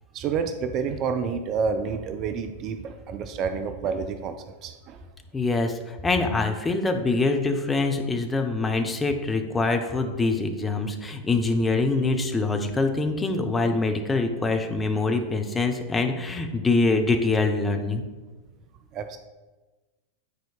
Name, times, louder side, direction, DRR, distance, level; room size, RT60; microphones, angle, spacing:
voice 1, 0.1-5.0 18.9-19.2, right 5 dB, 35° right, 9 dB, 0.4 m, -29 dB
voice 2, 5.3-18.0, left 3 dB, 15° left, 4 dB, 0.6 m, -24 dB
9.4 x 4.5 x 2.4 m, 1.2 s
figure-of-eight pair, 90°, 0 cm